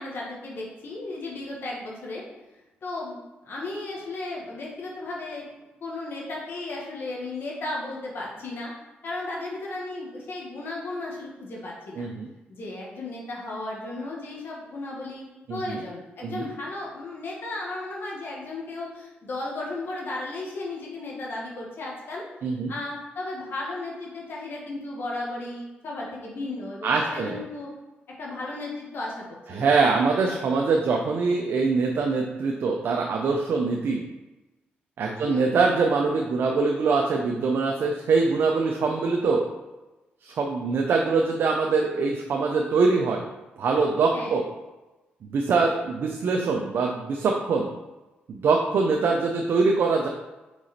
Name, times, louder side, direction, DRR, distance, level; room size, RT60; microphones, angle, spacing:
voice 1, 0.0-2.2 2.8-5.5 5.8-8.7 9.0-12.1 12.5-22.2 22.7-27.7 28.2-29.2 29.5-29.9 35.2-35.5 44.1-44.4, left 2 dB, 65° left, -3 dB, 1.5 m, -35 dB
voice 2, 12.0-12.3 15.5-15.8 16.2-16.4 22.4-22.7 26.8-27.4 29.5-34.0 35.0-39.5 40.2-43.2 43.6-44.5 45.2-47.7 48.3-50.1, right 4 dB, 70° right, 1 dB, 0.7 m, -23 dB
5.1 x 4.7 x 4.2 m, 1.1 s
cardioid pair, 75°, 4 cm